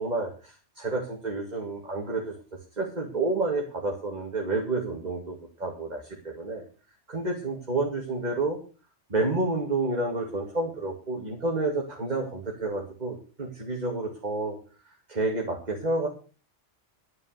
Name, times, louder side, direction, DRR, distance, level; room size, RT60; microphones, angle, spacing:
voice 1, 0.0-6.6 7.1-8.6 9.1-14.6 15.1-16.1, right 2 dB, 35° right, 0 dB, 2.5 m, -30 dB
12.0 x 9.5 x 6.7 m, 0.37 s
omnidirectional pair, 1.2 m